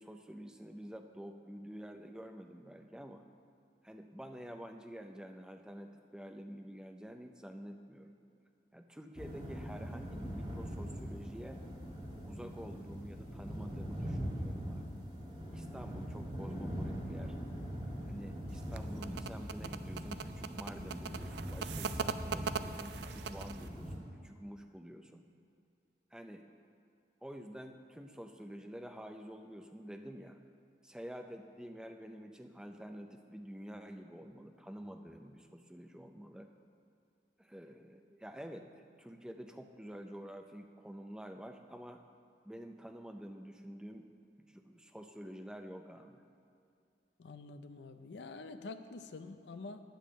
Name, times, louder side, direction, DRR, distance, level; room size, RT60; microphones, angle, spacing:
voice 1, 0.0-3.2 3.8-8.2 8.7-11.6 12.2-14.9 15.5-17.3 18.0-25.2 26.1-26.4 27.2-30.4 30.8-36.5 37.4-38.7 39.0-42.0 42.5-44.1 44.4-46.2, equal, 5° right, 5 dB, 0.4 m, -48 dB
sound 1, 9.2-24.0, equal, 25° right, 1.5 m, -42 dB
sound 2, 18.5-23.7, right 6 dB, 70° right, 0.4 m, -40 dB
voice 2, 47.2-49.8, left 3 dB, 75° left, 9 dB, 0.5 m, -47 dB
10.0 x 5.2 x 7.4 m, 2.4 s
head